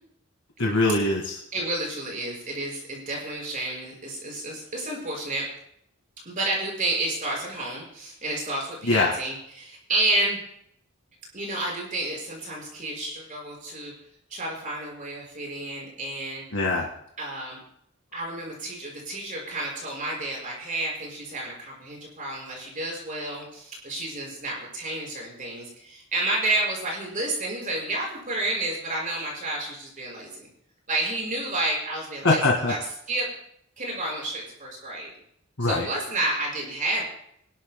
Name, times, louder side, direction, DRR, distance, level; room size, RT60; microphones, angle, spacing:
voice 1, 0.6-1.4 8.9-9.1 16.5-16.9 32.2-32.7 35.6-35.9, left 2 dB, 80° left, -2 dB, 1.9 m, -22 dB
voice 2, 1.5-5.4 6.3-10.4 11.3-13.9 14.3-16.4 17.2-17.6 18.1-30.5 30.9-32.4 32.7-32.8 33.1-33.3 33.8-35.1 35.6-37.0, right 2 dB, 40° right, -2 dB, 5.6 m, -30 dB
25.5 x 12.5 x 2.2 m, 0.71 s
head